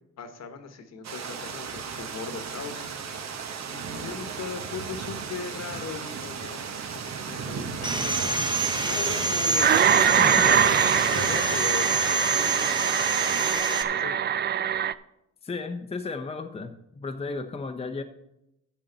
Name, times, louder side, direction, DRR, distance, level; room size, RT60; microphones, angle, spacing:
voice 1, 0.2-2.8 3.7-6.7 7.2-8.5 8.8-14.2, left 6 dB, 60° left, 7 dB, 1.3 m, -39 dB
sound 1, 1.0-13.6, right 6 dB, 60° right, 1.2 m, -35 dB
Sawing, 7.8-13.8, right 3 dB, 15° right, 0.9 m, -27 dB
sound 2, 9.6-14.9, right 9 dB, 35° right, 0.4 m, -23 dB
voice 2, 10.2-10.5 15.4-18.0, left 3 dB, 20° left, 5 dB, 0.7 m, -34 dB
11.5 x 7.7 x 4.0 m, 0.85 s
cardioid pair, 90°, 30 cm